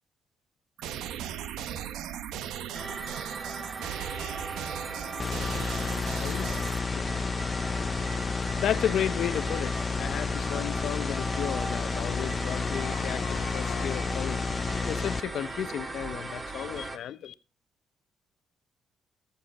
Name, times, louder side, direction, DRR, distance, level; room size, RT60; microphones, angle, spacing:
sound 1, 0.8-6.8, right 10 dB, 90° right, 0.9 m, -37 dB
sound 2, 2.7-17.0, right 3 dB, 25° right, 2.0 m, -38 dB
voice 1, 3.8-4.5 6.1-6.6 6.9-7.1 8.4-17.3, left 10 dB, 70° left, 0.9 m, -34 dB
sound 3, 5.2-15.2, left 5 dB, 35° left, 0.6 m, -31 dB
19.0 x 7.1 x 4.1 m
cardioid pair, 90°, 0 cm